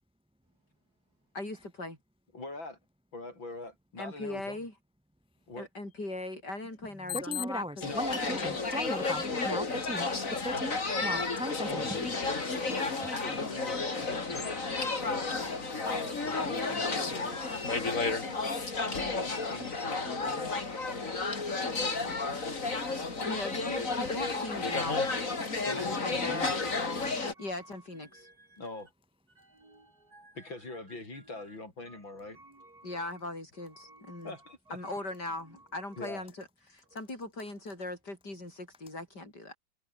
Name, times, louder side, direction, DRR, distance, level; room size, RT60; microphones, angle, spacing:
voice 1, 1.3-2.0 4.0-4.7 5.6-8.6 13.1-13.2 22.1-22.6 23.2-25.0 25.8-26.6 27.4-28.3 32.8-34.3 34.7-39.5, left 2 dB, 60° left, 8.8 m, -39 dB
voice 2, 2.3-2.8 3.1-4.7 5.5-5.7 7.8-8.1 11.7-11.9 12.7-18.4 18.8-20.5 25.6-26.6 28.6-28.9 30.3-32.4 34.2-34.8 36.0-36.3, left 2 dB, 85° left, 8.2 m, -43 dB
voice 3, 7.0-10.1 10.4-12.0, left 1 dB, 5° right, 1.3 m, -36 dB
sound 1, 7.8-27.3, left 3 dB, 45° left, 3.5 m, -32 dB
voice 4, 14.5-15.7 16.0-16.2 16.9-19.2 20.5-23.3 24.4-24.5 24.9-25.1 25.4-25.7 26.5-27.7 28.0-28.6 29.4-30.5 31.1-31.4 31.9-33.2 33.6-34.5 34.8-35.0 35.4-36.0, right 2 dB, 50° right, 7.2 m, -57 dB
omnidirectional pair, 2.1 m